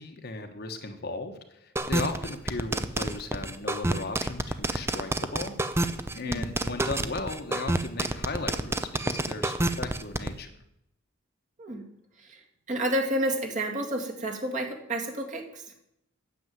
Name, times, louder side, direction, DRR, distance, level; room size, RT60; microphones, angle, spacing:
voice 1, 0.0-10.5, left 3 dB, 50° left, 5 dB, 1.3 m, -36 dB
sound 1, 1.8-10.3, right 2 dB, 15° right, 0.6 m, -28 dB
voice 2, 12.7-15.6, right 1 dB, 40° right, 1 dB, 2.1 m, -30 dB
9.5 x 7.3 x 9.2 m, 0.78 s
head